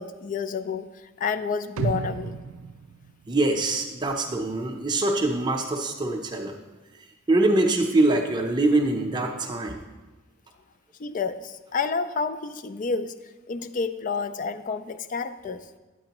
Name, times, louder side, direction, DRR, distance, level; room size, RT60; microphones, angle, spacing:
voice 1, 0.0-2.4 11.0-13.1 13.5-15.7, left 5 dB, 40° left, 12 dB, 0.4 m, -30 dB
sound 1, 1.8-3.9 4.3-4.4, right 5 dB, 90° right, 0.3 m, -33 dB
voice 2, 3.3-6.6 7.3-9.8, right 2 dB, 20° right, 3 dB, 0.6 m, -24 dB
9.2 x 8.6 x 2.9 m, 1.2 s
head